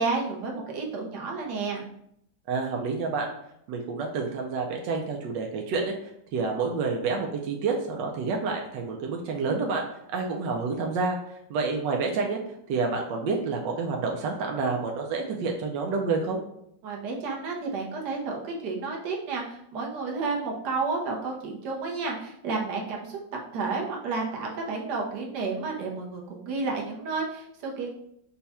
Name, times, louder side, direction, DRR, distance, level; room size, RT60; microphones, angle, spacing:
voice 1, 0.0-1.8 16.8-23.2 23.5-27.9, right 4 dB, 70° right, -1 dB, 1.5 m, -31 dB
voice 2, 2.5-3.3 3.7-9.8 10.1-11.2 11.5-12.4 12.7-16.4, right 4 dB, 90° right, 1 dB, 1.3 m, -28 dB
5.4 x 2.3 x 4.2 m, 0.74 s
omnidirectional pair, 1.9 m